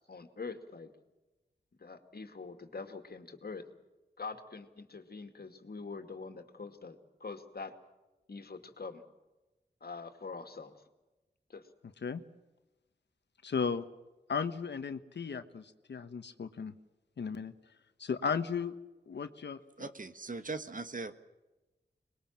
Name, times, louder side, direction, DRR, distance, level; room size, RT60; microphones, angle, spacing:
voice 1, 0.1-0.9 1.8-3.7 4.2-7.7 8.3-9.0 9.8-10.7 11.5-11.7, left 4 dB, 65° left, 7 dB, 2.4 m, -44 dB
voice 2, 13.4-13.8 14.3-16.7 17.2-17.5 18.0-18.7 19.1-19.9, left 6 dB, 85° left, 10 dB, 1.2 m, -35 dB
voice 3, 19.8-21.1, right 3 dB, 50° right, 10 dB, 1.6 m, -40 dB
24.5 x 21.0 x 7.5 m, 1.1 s
cardioid pair, 50°, 18 cm